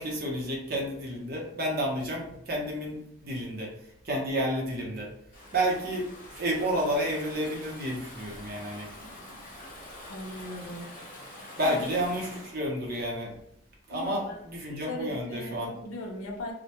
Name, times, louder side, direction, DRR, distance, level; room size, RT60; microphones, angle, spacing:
voice 1, 0.0-3.7 4.0-5.1 5.5-8.9 11.6-13.3 13.9-15.7, equal, 50° right, -2 dB, 0.7 m, -31 dB
Stream / Ocean, 5.3-12.6, left 1 dB, 45° left, 0.8 m, -46 dB
voice 2, 10.1-10.9 11.6-12.0 13.9-14.4 14.9-16.5, left 1 dB, 85° left, 0 dB, 0.5 m, -37 dB
2.1 x 2.1 x 2.8 m, 0.71 s
head